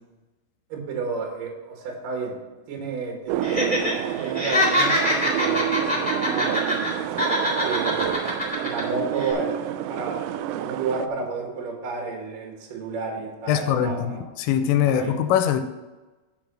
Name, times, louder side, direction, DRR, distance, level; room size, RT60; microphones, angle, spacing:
voice 1, 0.7-2.4 2.7-6.9 7.6-14.2 14.9-15.2, right 4 dB, 60° right, 0 dB, 2.5 m, -32 dB
sound 1, 3.3-11.1, right 12 dB, 85° right, 3.2 m, -29 dB
Laughter, 3.4-3.9 4.2-6.9 7.2-8.8 9.2-9.3, left 1 dB, 5° left, 1.9 m, -24 dB
voice 2, 13.5-15.6, left 9 dB, 80° left, 8 dB, 3.2 m, -22 dB
10.0 x 5.1 x 6.0 m, 1.1 s
omnidirectional pair, 5.9 m